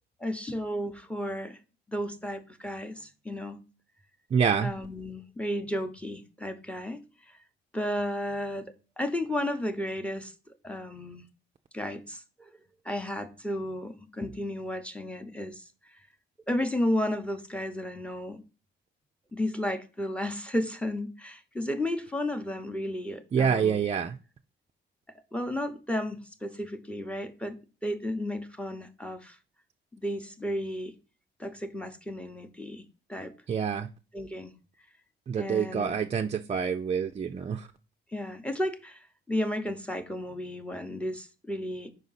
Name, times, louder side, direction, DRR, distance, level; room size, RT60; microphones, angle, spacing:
voice 1, 0.2-1.6 1.9-3.6 4.6-7.4 7.7-10.3 10.6-11.3 11.7-12.5 12.8-15.6 16.5-18.4 19.3-23.9 25.3-29.4 29.9-30.9 31.4-32.8 33.1-33.3 34.1-34.5 35.3-36.0 38.1-41.9, left 1 dB, 5° left, 0.8 m, -33 dB
voice 2, 4.3-4.7 23.3-24.2 33.5-33.9 35.3-37.7, right 7 dB, 30° right, 0.4 m, -27 dB
5.1 x 4.8 x 4.0 m
cardioid pair, 90°, 20 cm